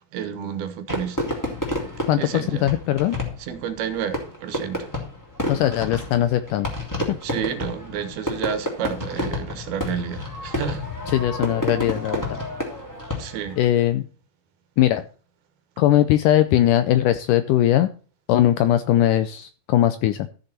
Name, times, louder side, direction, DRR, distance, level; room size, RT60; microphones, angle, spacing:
voice 1, 0.1-1.2 2.0-2.7 3.4-4.9 7.2-10.9 13.2-13.6, right 8 dB, 85° right, 3.2 m, -30 dB
Fireworks, 0.9-13.6, left 1 dB, 5° left, 2.6 m, -30 dB
voice 2, 2.1-3.2 5.5-6.7 7.1-7.2 11.1-12.4 13.6-14.1 14.8-15.0 15.8-17.9 18.3-20.3, left 12 dB, 85° left, 1.9 m, -20 dB
13.5 x 6.8 x 4.3 m
omnidirectional pair, 4.3 m